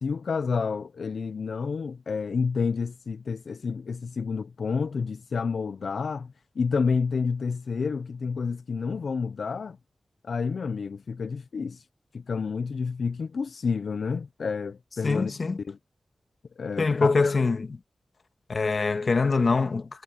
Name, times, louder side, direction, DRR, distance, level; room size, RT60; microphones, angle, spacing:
voice 1, 0.0-9.8 10.2-11.9 12.1-15.3 15.6-15.8 16.6-17.4, left 5 dB, 75° left, 0.5 m, -29 dB
voice 2, 15.0-15.6 16.8-17.8 18.5-20.0, left 4 dB, 55° left, 1.5 m, -24 dB
wide cardioid pair, 80°, 0 cm